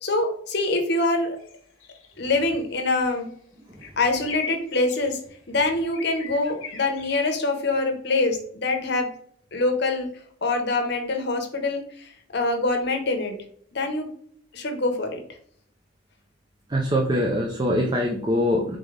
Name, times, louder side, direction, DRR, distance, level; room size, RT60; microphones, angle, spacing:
voice 1, 0.0-1.4 2.2-3.3 4.0-5.2 5.5-9.1 9.5-10.1 10.4-13.4 13.7-14.1 14.5-15.2, left 2 dB, 55° left, 4 dB, 0.8 m, -24 dB
sound 1, 1.4-1.5 1.8-2.1 3.8-5.1 5.9-7.3, left 5 dB, 85° left, 0.9 m, -37 dB
voice 2, 16.7-18.8, equal, 20° right, 1 dB, 0.5 m, -23 dB
3.9 x 3.7 x 3.2 m, 0.62 s
head